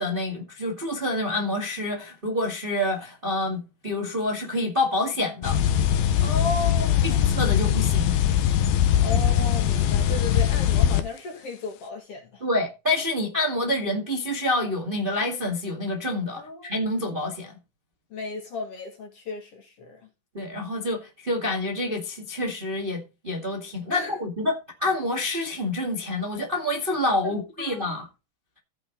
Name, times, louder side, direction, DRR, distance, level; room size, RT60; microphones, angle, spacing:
voice 1, 0.0-5.6 7.3-8.2 12.4-17.5 20.3-24.5 24.8-28.0, left 1 dB, 20° right, 1.5 m, -27 dB
sound 1, 5.4-11.0, left 10 dB, 90° left, 2.9 m, -21 dB
voice 2, 6.2-7.2 9.0-12.4 16.4-16.7 18.1-20.1 23.9-24.1 27.2-28.0, left 3 dB, 45° left, 2.6 m, -34 dB
15.5 x 6.0 x 3.9 m
omnidirectional pair, 4.1 m